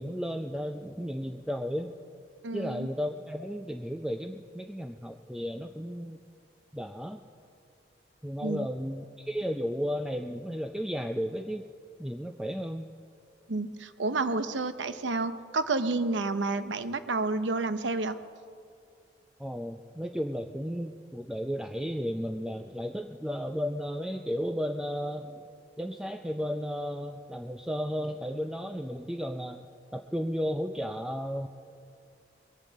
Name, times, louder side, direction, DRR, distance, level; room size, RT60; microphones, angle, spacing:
voice 1, 0.0-1.9 2.5-6.2 6.7-7.2 8.2-11.7 12.0-12.9 19.4-25.4 25.8-29.7 29.9-31.5, equal, 5° right, 5 dB, 0.4 m, -34 dB
voice 2, 2.4-2.9 8.4-8.7 13.5-18.2, right 3 dB, 90° right, 11 dB, 0.8 m, -30 dB
21.5 x 8.6 x 7.4 m, 2.3 s
head